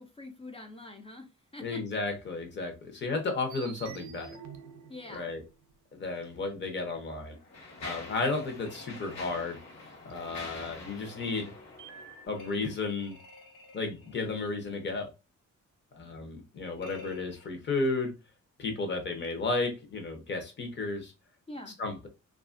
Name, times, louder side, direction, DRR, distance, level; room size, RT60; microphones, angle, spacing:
voice 1, 0.0-1.8 4.9-5.3 21.5-21.8, left 2 dB, 20° left, 4 dB, 0.3 m, -45 dB
voice 2, 1.6-4.4 5.1-5.4 5.9-7.4 7.8-9.6 10.0-11.5 12.3-13.2 13.7-15.1 15.9-18.1 18.6-21.1 21.8-22.1, left 3 dB, 35° left, 4 dB, 0.7 m, -33 dB
sound 1, 3.5-5.8 6.2-6.3 9.7-9.8 10.1-10.4 11.8-12.3, right 7 dB, 70° right, 0.5 m, -48 dB
Mechanisms, 6.1-6.3 7.0-12.8, left 3 dB, 60° left, 1.0 m, -46 dB
sound 2, 8.6-10.0 12.4-14.5 16.8-17.5, left 2 dB, 90° left, 0.6 m, -51 dB
2.7 x 2.4 x 2.4 m, 0.27 s
wide cardioid pair, 160°, 30 cm